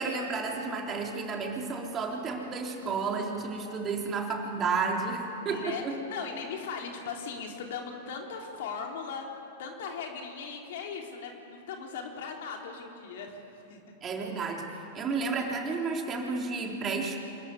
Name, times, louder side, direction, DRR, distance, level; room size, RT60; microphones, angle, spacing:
voice 1, 0.0-6.0 14.0-17.2, right 4 dB, 25° right, 0 dB, 3.8 m, -32 dB
voice 2, 5.4-9.3 9.6-13.4 13.7-13.8, left 5 dB, 60° left, 1 dB, 3.5 m, -38 dB
26.5 x 14.5 x 9.9 m, 2.8 s
hypercardioid pair, 100°, 0 cm